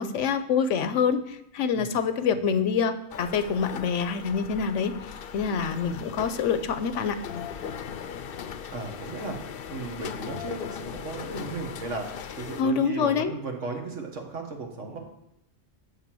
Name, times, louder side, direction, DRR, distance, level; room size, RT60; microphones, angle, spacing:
voice 1, 0.0-4.9 5.3-7.2 12.6-13.3, left 6 dB, 85° left, 11 dB, 1.0 m, -26 dB
sound 1, 3.1-12.6, left 7 dB, 60° left, 0.7 m, -39 dB
voice 2, 8.7-15.0, right 3 dB, 85° right, 2 dB, 1.8 m, -36 dB
10.5 x 3.7 x 7.5 m, 0.80 s
omnidirectional pair, 1.2 m